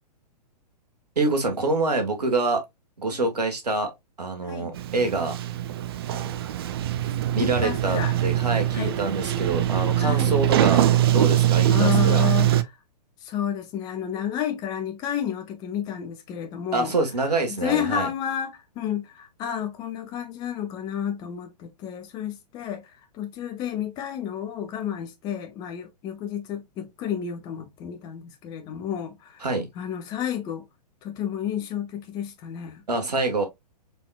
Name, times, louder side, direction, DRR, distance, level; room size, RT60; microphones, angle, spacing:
voice 1, 1.1-2.6 3.0-3.9 4.2-5.3 7.3-12.3 16.7-18.1 29.4-29.7 32.9-33.5, right 3 dB, 70° right, 1.4 m, -26 dB
Sliding door, 4.7-12.6, right 12 dB, 35° right, 0.4 m, -22 dB
voice 2, 7.4-8.1 8.7-9.0 10.0-10.4 11.7-12.6 13.2-16.9 17.5-29.5 29.8-30.6 31.0-32.8, left 9 dB, 20° left, 0.6 m, -31 dB
4.2 x 3.6 x 2.3 m
figure-of-eight pair, 115°, 21 cm